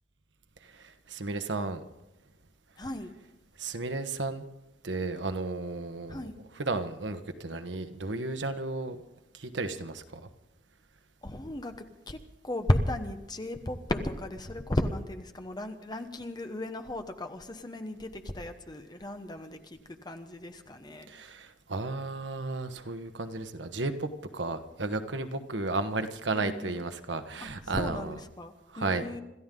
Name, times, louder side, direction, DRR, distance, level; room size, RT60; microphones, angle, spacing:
voice 1, 0.6-1.8 3.6-4.4 4.8-6.2 6.6-9.0 9.3-10.3 21.1-28.1 28.8-29.0, right 3 dB, 85° right, 8 dB, 1.2 m, -33 dB
voice 2, 2.8-3.1 6.1-6.4 11.2-21.2 26.3-26.8 27.4-29.2, left 1 dB, 25° left, 7 dB, 1.1 m, -35 dB
27.0 x 13.5 x 3.8 m, 0.94 s
head